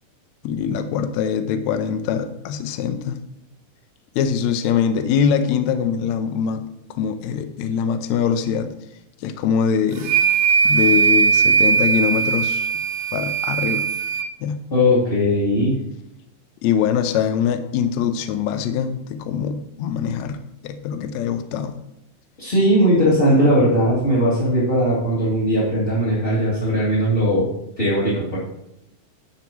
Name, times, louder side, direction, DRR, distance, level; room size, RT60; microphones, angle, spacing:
voice 1, 0.4-3.2 4.1-6.7 6.9-8.7 9.2-10.1 10.6-12.7 13.1-13.9 14.4-14.6 16.6-20.4 20.6-21.7, left 7 dB, 80° left, 8 dB, 1.6 m, -23 dB
sound 1, 10.0-14.3, right 6 dB, 70° right, 1.9 m, -19 dB
voice 2, 14.7-15.7 22.4-27.5 27.8-28.4, equal, 15° left, -9 dB, 2.6 m, -18 dB
10.5 x 10.5 x 3.1 m, 0.83 s
omnidirectional pair, 4.0 m